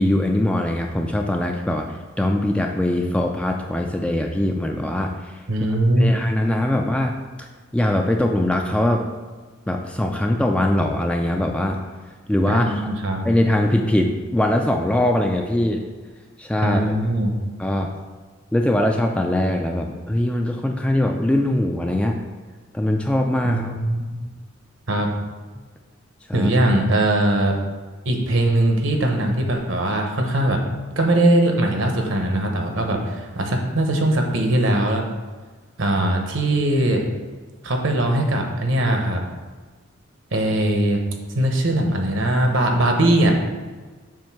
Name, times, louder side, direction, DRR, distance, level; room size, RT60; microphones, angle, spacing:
voice 1, 0.0-5.4 6.0-7.1 7.4-9.0 9.7-11.8 12.3-12.8 13.2-15.8 16.4-17.0 17.6-17.9 18.5-22.2 22.7-23.8 25.6-25.7 26.3-26.5, left 1 dB, 5° left, 2 dB, 0.3 m, -22 dB
voice 2, 5.5-6.1 12.5-13.2 16.6-17.3 23.4-24.3 24.9-25.1 26.3-27.5 28.0-30.6 31.0-35.0 35.8-37.0 37.6-39.2 40.3-41.0 41.3-43.3, right 1 dB, 65° right, 3 dB, 0.9 m, -20 dB
7.4 x 2.6 x 5.9 m, 1.4 s
head